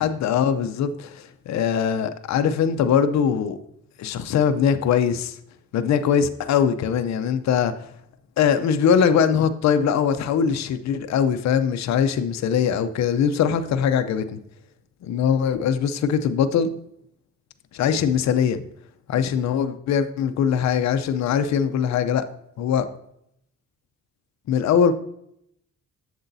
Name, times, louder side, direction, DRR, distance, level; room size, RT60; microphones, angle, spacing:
voice 1, 0.0-3.6 4.0-5.4 5.7-7.9 8.4-14.4 15.0-16.7 17.7-18.6 19.1-22.3 22.6-22.9 24.5-24.9, left 7 dB, 65° left, 9 dB, 0.6 m, -21 dB
8.0 x 7.0 x 2.7 m, 0.75 s
cardioid pair, 90°, 30 cm